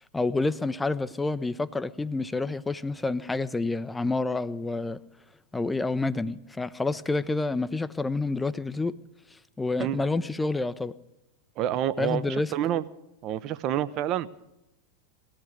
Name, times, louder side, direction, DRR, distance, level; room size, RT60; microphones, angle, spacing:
voice 1, 0.1-5.0 5.5-8.9 9.6-10.9 12.0-12.5, left 3 dB, 10° left, 15 dB, 0.6 m, -28 dB
voice 2, 11.6-12.8 13.2-14.3, right 11 dB, 35° right, 14 dB, 0.7 m, -28 dB
19.0 x 15.0 x 5.0 m, 0.92 s
figure-of-eight pair, 90°, 0 cm